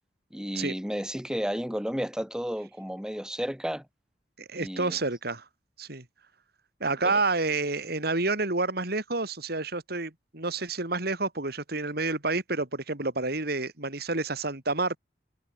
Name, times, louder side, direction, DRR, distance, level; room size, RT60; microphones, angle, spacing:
voice 1, 0.3-3.8 4.6-5.0 7.0-7.2, equal, 5° right, 2.8 m, -32 dB
voice 2, 4.4-5.5 5.8-6.0 6.8-15.0, right 3 dB, 65° right, 3.5 m, -29 dB
head